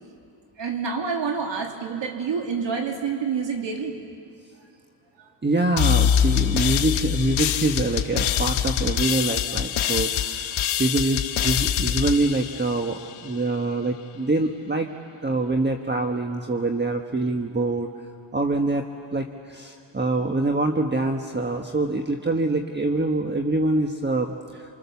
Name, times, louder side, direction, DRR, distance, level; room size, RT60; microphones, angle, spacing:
voice 1, 0.6-4.0 5.2-5.3, right 5 dB, 65° right, 3 dB, 2.8 m, -28 dB
voice 2, 5.4-14.9 15.2-17.9 18.3-18.9 19.1-24.8, right 2 dB, 20° right, 4 dB, 1.4 m, -25 dB
sound 1, 5.8-13.3, left 10 dB, 90° left, 1.3 m, -24 dB
28.0 x 27.0 x 7.1 m, 2.3 s
cardioid pair, 95°, 48 cm